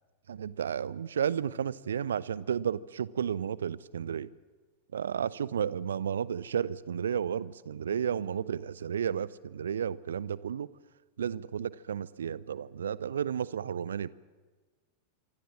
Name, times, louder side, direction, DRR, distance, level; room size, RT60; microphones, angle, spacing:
voice 1, 0.3-4.3 4.9-10.7 11.2-14.1, right 8 dB, 65° right, 0.8 m, -32 dB
25.5 x 25.5 x 7.4 m
figure-of-eight pair, 90°, 0 cm